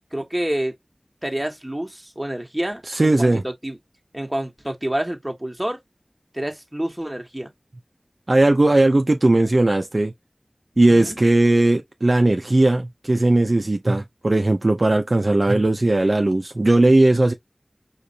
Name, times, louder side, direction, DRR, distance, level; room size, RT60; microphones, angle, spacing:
voice 1, 0.1-0.8 1.2-3.8 4.1-5.8 6.3-7.5 10.9-11.2, right 1 dB, 15° right, 1.5 m, -28 dB
voice 2, 2.9-3.4 8.3-10.1 10.8-17.3, right 2 dB, 55° right, 0.7 m, -18 dB
4.9 x 3.2 x 2.8 m
wide cardioid pair, 50°, 0 cm